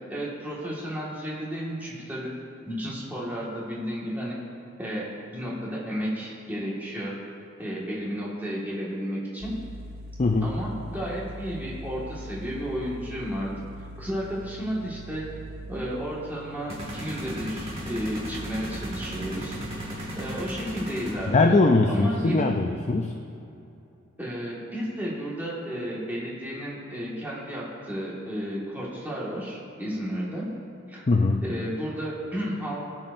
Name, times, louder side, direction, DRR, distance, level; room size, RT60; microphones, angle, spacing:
voice 1, 0.1-2.3 2.7-4.4 4.8-7.2 7.6-9.6 10.4-13.5 14.0-15.3 15.7-19.8 20.2-21.6 21.9-22.5 24.2-30.6 30.9-31.1 31.4-32.8, equal, 10° right, -6 dB, 1.8 m, -32 dB
sound 1, 9.4-20.4, right 1 dB, 45° right, 0.7 m, -42 dB
voice 2, 10.2-10.5 21.3-23.1 31.1-31.4, left 3 dB, 35° left, 4 dB, 0.4 m, -21 dB
sound 2, 16.7-21.5, equal, 30° right, 1.9 m, -36 dB
19.0 x 7.4 x 2.6 m, 2.7 s
head